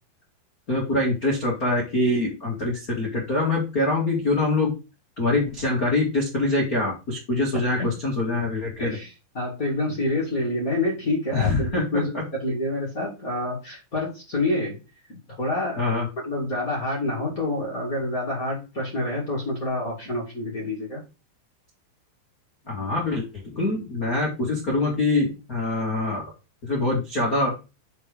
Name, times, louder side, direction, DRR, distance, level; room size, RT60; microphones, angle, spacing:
voice 1, 0.7-4.7 5.2-9.0 11.3-11.9 15.8-16.1 22.7-23.2 23.5-26.3 26.6-27.5, left 2 dB, 85° left, -3 dB, 0.8 m, -24 dB
voice 2, 8.8-14.8 15.1-15.8 16.2-21.0, left 2 dB, 30° left, -4 dB, 1.6 m, -27 dB
6.8 x 4.7 x 5.1 m, 0.29 s
omnidirectional pair, 5.5 m